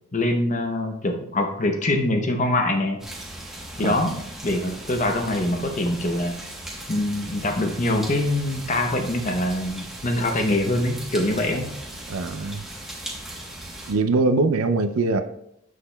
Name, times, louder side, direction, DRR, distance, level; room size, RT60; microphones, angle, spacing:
voice 1, 0.1-3.0 3.8-4.2 4.4-6.5 6.9-11.7, left 1 dB, 35° left, 0.7 m, -24 dB
sound 1, 3.0-13.9, right 1 dB, ahead, 1.1 m, -38 dB
voice 2, 3.8-4.2 12.1-12.7 13.9-15.2, right 3 dB, 80° right, 0.5 m, -22 dB
7.5 x 6.3 x 2.3 m
head